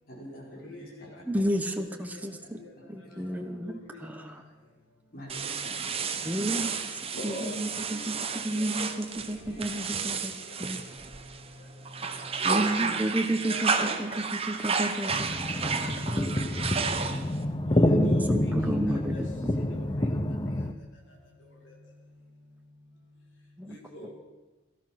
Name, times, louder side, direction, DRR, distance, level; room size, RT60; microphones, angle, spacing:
voice 1, 0.1-0.8 3.0-3.3 5.1-6.3 9.4-9.5, equal, 55° left, -2 dB, 4.8 m, -45 dB
voice 2, 1.2-2.6 2.9-4.4 6.2-10.3 10.6-10.8 12.4-16.3 17.8-19.3 23.6-23.8, right 1 dB, 10° right, 4 dB, 1.1 m, -32 dB
voice 3, 1.9-2.2 3.7-4.0 7.1-9.0 9.9-10.3 12.7-13.0 13.4-13.9 17.8-19.2 19.7-20.1 23.7-24.1, left 2 dB, 90° left, 0 dB, 2.8 m, -43 dB
sound 1, 5.3-11.5 11.9-17.4, right 5 dB, 30° right, 1.2 m, -32 dB
sound 2, 15.1-20.7, left 1 dB, 25° left, 0.8 m, -27 dB
17.5 x 13.0 x 6.0 m, 1.1 s
head